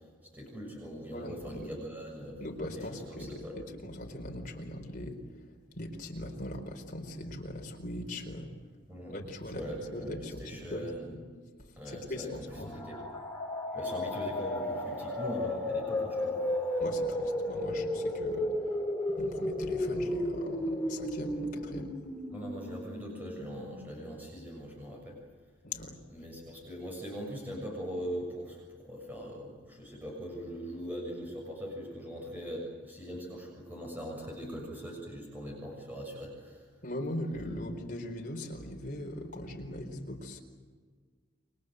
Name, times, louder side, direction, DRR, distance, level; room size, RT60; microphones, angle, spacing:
voice 1, 0.3-2.4 2.8-3.6 8.9-9.2 9.5-11.1 11.8-13.0 13.7-16.4 22.3-25.2 26.1-36.6, equal, 10° right, -1 dB, 6.9 m, -41 dB
voice 2, 1.1-1.7 2.4-5.2 5.8-8.5 9.1-11.2 11.6-12.2 12.5-12.7 16.8-18.5 19.2-21.9 25.6-25.9 36.8-40.4, left 1 dB, 40° left, 2 dB, 4.4 m, -40 dB
sound 1, 12.5-24.2, left 1 dB, 5° left, 3.4 m, -34 dB
29.5 x 24.5 x 7.9 m, 1.5 s
head